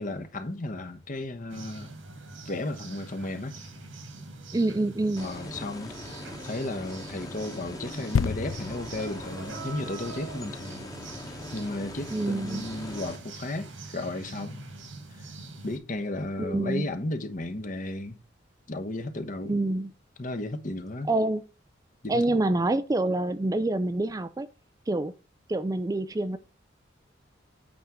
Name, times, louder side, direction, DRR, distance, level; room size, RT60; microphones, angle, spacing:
voice 1, 0.0-1.9 2.4-3.6 5.2-10.9 11.3-14.6 15.1-15.3 15.6-18.2 18.7-19.5 20.2-21.1 22.0-22.4, left 2 dB, 45° left, 1.1 m, -34 dB
sound 1, 1.5-15.8, right 3 dB, 85° right, 2.2 m, -43 dB
voice 2, 4.5-5.3 12.1-12.7 16.4-16.8 19.5-19.9 21.1-21.4 22.1-24.5 24.9-25.1 25.5-26.4, right 2 dB, 20° right, 0.4 m, -26 dB
sound 2, 5.2-13.2, left 1 dB, 20° left, 1.2 m, -42 dB
sound 3, 8.1-11.7 12.4-12.5, left 6 dB, 85° left, 0.4 m, -33 dB
8.6 x 3.6 x 6.3 m
head